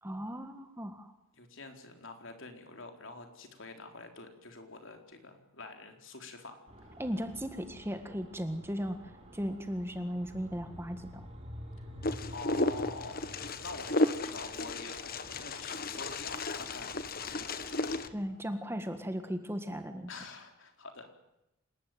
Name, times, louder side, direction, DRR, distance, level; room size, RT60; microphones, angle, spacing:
voice 1, 0.0-1.1 7.0-11.3 18.1-20.1, equal, 10° right, 7 dB, 1.6 m, -37 dB
voice 2, 1.4-6.6 12.0-13.2 13.6-16.9 17.2-17.8 20.1-21.2, left 3 dB, 60° left, 5 dB, 4.1 m, -46 dB
sound 1, 6.7-18.1, equal, 30° right, 6.1 m, -50 dB
Wind, 12.0-18.1, left 2 dB, 45° left, 1.4 m, -34 dB
27.5 x 19.5 x 9.4 m, 0.90 s
head